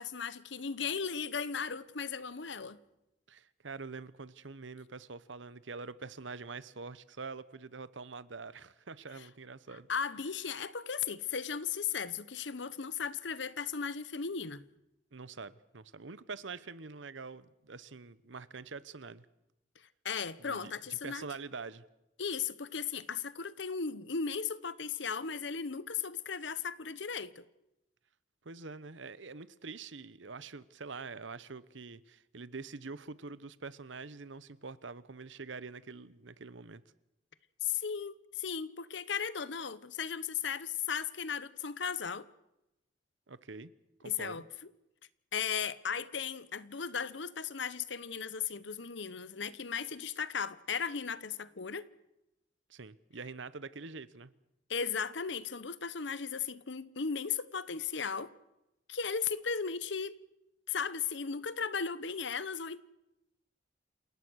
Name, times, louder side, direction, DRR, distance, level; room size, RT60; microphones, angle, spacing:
voice 1, 0.0-2.8 9.9-14.6 20.0-21.3 22.2-27.4 37.6-42.3 44.0-44.4 45.3-51.9 54.7-58.3 58.9-60.2 60.7-62.8, left 6 dB, 70° left, 0.9 m, -36 dB
voice 2, 3.3-9.9 15.1-19.3 20.4-21.8 28.4-36.8 43.3-43.7 44.0-44.4 52.7-54.3, right 4 dB, 80° right, 1.0 m, -45 dB
28.5 x 17.5 x 6.4 m
head